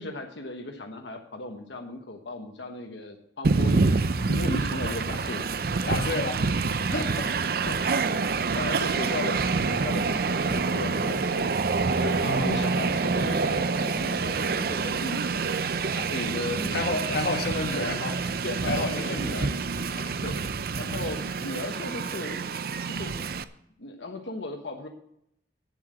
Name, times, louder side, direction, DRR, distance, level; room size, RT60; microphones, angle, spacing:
voice 1, 0.0-5.5 7.7-9.4 9.7-15.3 15.8-17.4 17.7-18.0 18.4-19.5 20.2-20.4 20.8-22.4 22.8-23.2 23.8-24.9, left 2 dB, 75° left, 3 dB, 1.3 m, -36 dB
Train, 3.4-23.4, right 4 dB, 55° right, 0.5 m, -27 dB
voice 2, 5.8-7.5 12.1-12.8 16.7-18.2 18.7-19.5 19.9-20.1, left 2 dB, 55° left, 4 dB, 1.6 m, -31 dB
10.5 x 7.6 x 7.7 m, 0.75 s
head